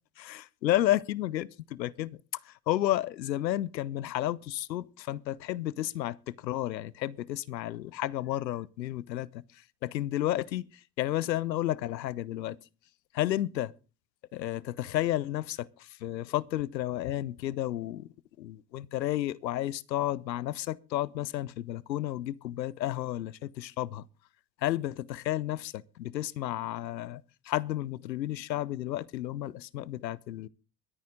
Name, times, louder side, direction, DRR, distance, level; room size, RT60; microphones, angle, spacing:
voice 1, 0.2-2.2 2.4-9.3 9.8-10.6 11.0-12.6 13.1-13.7 14.3-18.1 18.4-24.1 24.6-30.5, left 14 dB, 85° left, 0.8 m, -32 dB
23.0 x 9.3 x 3.7 m
hypercardioid pair, 80°, 50 cm